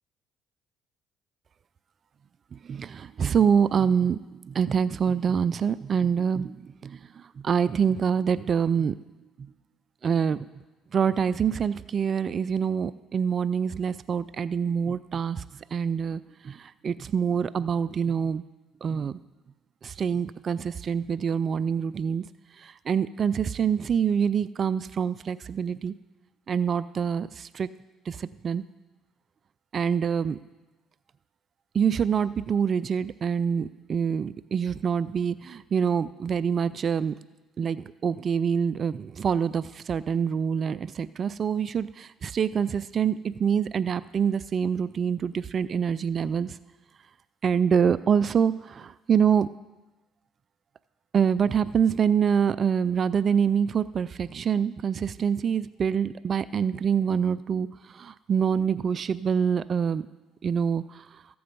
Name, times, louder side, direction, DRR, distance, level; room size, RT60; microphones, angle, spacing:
voice 1, 2.5-4.2 4.5-9.0 10.0-10.4 10.9-15.4 15.7-18.4 18.8-19.2 19.8-22.2 22.6-25.9 26.5-27.7 28.1-28.6 29.7-30.4 31.7-37.2 37.6-46.6 47.4-49.5 51.1-57.7 57.9-60.0 60.4-61.0, right 7 dB, 45° right, 16 dB, 0.3 m, -25 dB
14.0 x 7.8 x 5.3 m, 1.1 s
supercardioid pair, 75°, 0 cm